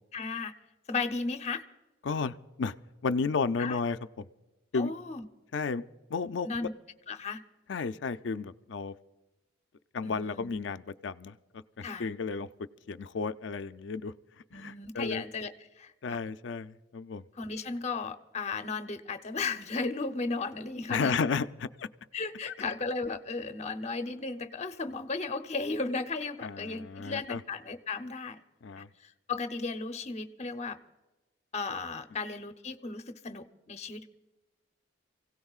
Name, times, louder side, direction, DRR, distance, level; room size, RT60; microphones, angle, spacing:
voice 1, 0.1-0.5 0.9-1.6 3.6-3.8 4.7-5.2 6.4-6.7 7.1-7.4 10.0-10.6 11.8-12.1 14.5-15.5 15.8-16.2 17.4-21.2 22.1-28.4 28.8-28.9 29.3-30.8 31.5-34.1, left 4 dB, 35° left, 8 dB, 0.7 m, -35 dB
voice 2, 2.0-2.7 3.0-4.3 4.7-4.9 5.5-5.8 6.1-6.7 7.7-8.9 9.9-11.4 11.8-12.5 12.9-14.1 14.5-15.2 16.0-17.2 20.9-21.9 22.4-22.5 26.4-27.4 28.6-28.9, left 4 dB, 65° left, 12 dB, 0.4 m, -33 dB
28.5 x 16.5 x 2.4 m, 1.1 s
head